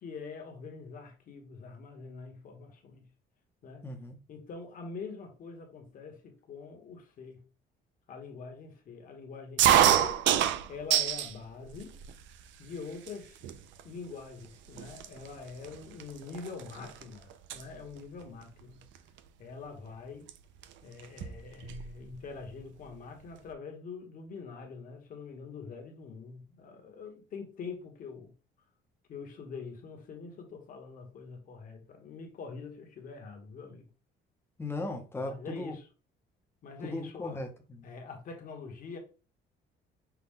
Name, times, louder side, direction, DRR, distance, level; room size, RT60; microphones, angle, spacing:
voice 1, 0.0-3.1 3.6-3.8 4.3-7.4 8.1-10.2 10.7-12.0 12.6-13.5 13.8-18.9 19.4-20.3 20.8-28.3 29.1-33.9 35.2-35.9 36.6-37.4 37.8-39.0, left 4 dB, 45° left, 1.1 m, -44 dB
voice 2, 3.8-4.2 34.6-35.7 36.8-37.9, left 2 dB, 10° left, 0.7 m, -37 dB
sound 1, 9.6-11.3 11.7-12.4 13.1-13.2 13.4-13.8 14.4-14.5 14.8-17.0 17.3-17.6 18.9-19.2 20.3-20.4 20.6-20.7 21.0-21.9, right 10 dB, 75° right, 0.5 m, -26 dB
5.9 x 2.3 x 3.5 m
cardioid pair, 160°, 19 cm